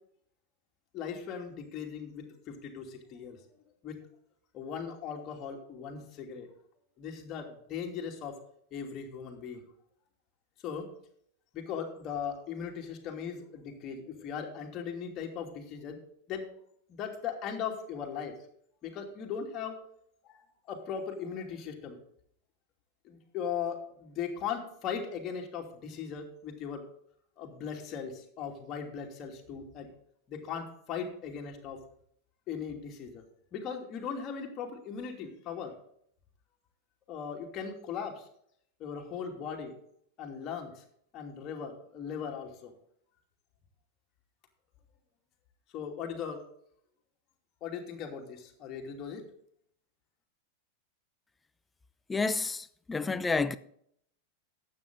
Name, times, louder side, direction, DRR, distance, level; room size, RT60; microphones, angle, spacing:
voice 1, 0.9-4.0 4.5-6.5 7.0-8.3 8.7-9.6 10.6-10.9 11.5-16.0 16.3-16.4 16.9-18.3 18.8-19.8 20.2-20.4 20.7-22.0 23.0-26.8 27.4-29.9 30.3-31.8 32.5-33.2 33.5-35.7 37.1-38.3 38.8-39.7 40.2-40.8 41.1-42.7 45.7-46.4 47.6-49.2, left 7 dB, 35° left, 2.7 m, -38 dB
voice 2, 52.1-53.6, left 4 dB, 10° left, 0.6 m, -30 dB
12.5 x 8.8 x 4.0 m
figure-of-eight pair, 90°, 0 cm